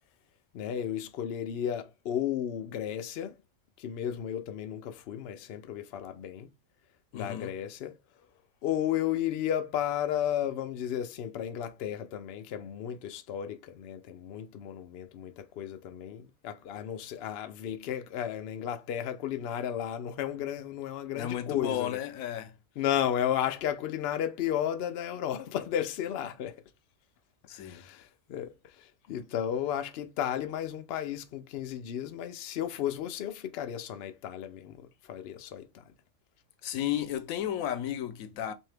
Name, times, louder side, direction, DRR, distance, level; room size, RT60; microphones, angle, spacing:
voice 1, 0.5-3.4 3.8-6.5 7.1-8.0 8.6-22.0 22.8-26.6 27.6-35.9, left 10 dB, 60° left, 0.7 m, -33 dB
voice 2, 7.1-7.5 21.2-22.5 27.4-27.8 36.6-38.5, left 11 dB, 85° left, 1.0 m, -33 dB
3.7 x 2.7 x 3.3 m
omnidirectional pair, 1.4 m